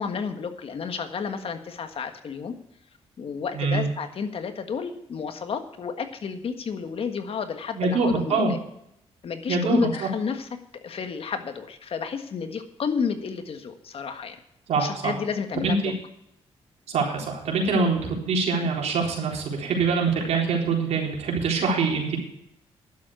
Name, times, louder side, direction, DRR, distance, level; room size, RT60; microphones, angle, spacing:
voice 1, 0.0-2.5 3.2-8.6 9.2-14.4 14.8-15.9, left 6 dB, 60° left, 8 dB, 1.6 m, -31 dB
voice 2, 3.5-3.8 7.8-8.5 9.5-10.1 14.7-15.1 15.6-15.9 16.9-22.2, right 4 dB, 80° right, 0 dB, 3.9 m, -24 dB
11.5 x 7.7 x 8.0 m, 0.76 s
cardioid pair, 90°, 11 cm